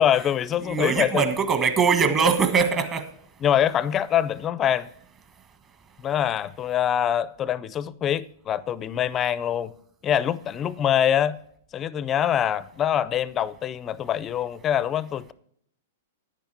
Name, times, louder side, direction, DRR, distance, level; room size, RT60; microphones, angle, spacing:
voice 1, 0.0-1.2 3.4-4.9 6.0-9.7 10.0-11.4 11.7-15.3, left 10 dB, 25° left, 0.4 m, -24 dB
voice 2, 0.6-3.0, right 5 dB, 30° right, 1.4 m, -22 dB
10.0 x 9.1 x 4.4 m
hypercardioid pair, 120°, 0 cm